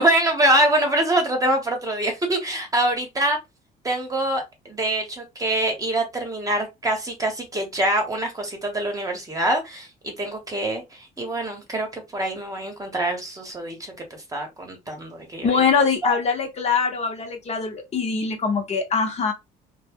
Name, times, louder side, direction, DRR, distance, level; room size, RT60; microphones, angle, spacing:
voice 1, 0.0-3.4 3.8-13.9 14.3-15.6 16.0-16.2, right 1 dB, 20° right, 0.9 m, -24 dB
voice 2, 15.4-19.3, left 5 dB, 40° left, 0.8 m, -23 dB
2.2 x 2.1 x 3.5 m
cardioid pair, 110°, 17 cm